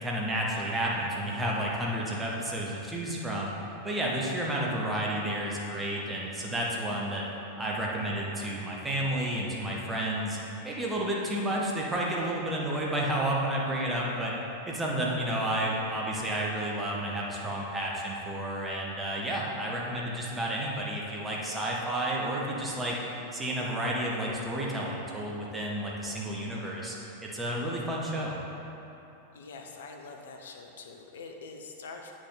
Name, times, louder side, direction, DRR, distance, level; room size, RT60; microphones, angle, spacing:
voice 1, 0.0-3.5 3.8-7.2 7.6-10.4 10.6-14.3 14.7-22.9 23.3-27.0 27.2-28.4, right 1 dB, 10° right, -4 dB, 1.2 m, -31 dB
voice 2, 29.3-32.1, left 4 dB, 60° left, 3 dB, 0.8 m, -44 dB
8.2 x 6.3 x 3.9 m, 2.9 s
figure-of-eight pair, 90°, 0 cm